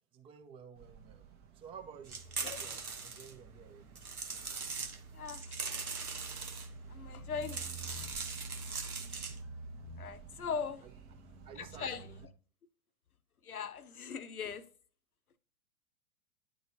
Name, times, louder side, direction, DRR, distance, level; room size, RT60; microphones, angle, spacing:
voice 1, 0.1-1.3 1.5-4.0 10.8-10.9 11.4-11.8, right 7 dB, 15° right, 0.6 m, -52 dB
sound 1, 0.8-12.3, right 2 dB, 30° right, 1.1 m, -49 dB
sound 2, 2.1-3.3 4.0-5.0 5.3-6.7 7.3-9.4, right 5 dB, 85° right, 1.1 m, -40 dB
voice 2, 5.1-5.6 6.9-7.9 8.1-8.2 10.0-10.9 11.6-12.2 13.4-14.7, left 6 dB, 90° left, 0.7 m, -40 dB
9.9 x 3.9 x 2.7 m
figure-of-eight pair, 105°, 42 cm